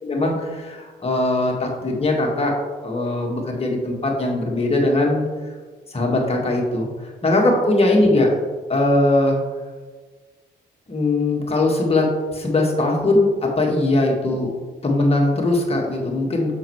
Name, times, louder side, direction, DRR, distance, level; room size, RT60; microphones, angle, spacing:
voice 1, 0.0-2.6 2.8-5.3 5.9-8.3 8.7-9.4 10.9-14.5 14.8-16.6, left 2 dB, 30° left, 0 dB, 1.7 m, -20 dB
6.3 x 5.4 x 3.2 m, 1.4 s
supercardioid pair, 55°, 21 cm